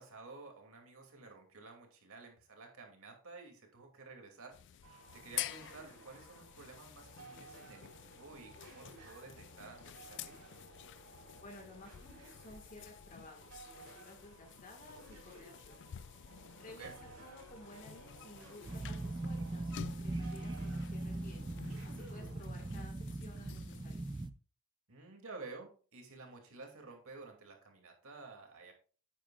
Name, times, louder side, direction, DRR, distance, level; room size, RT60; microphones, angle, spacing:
voice 1, 0.0-4.6 4.9-10.4 16.8-16.9 24.9-28.7, right 3 dB, 65° right, 3 dB, 2.5 m, -52 dB
sound 1, 4.5-24.3, left 11 dB, 55° left, 0.3 m, -50 dB
sound 2, 4.8-22.7, right 2 dB, 85° right, 4.0 m, -57 dB
voice 2, 11.4-15.9 16.1-24.1, left 2 dB, 40° left, 2 dB, 1.7 m, -55 dB
sound 3, 18.7-24.3, right 2 dB, 20° right, 0.5 m, -40 dB
10.0 x 8.9 x 2.4 m, 0.38 s
head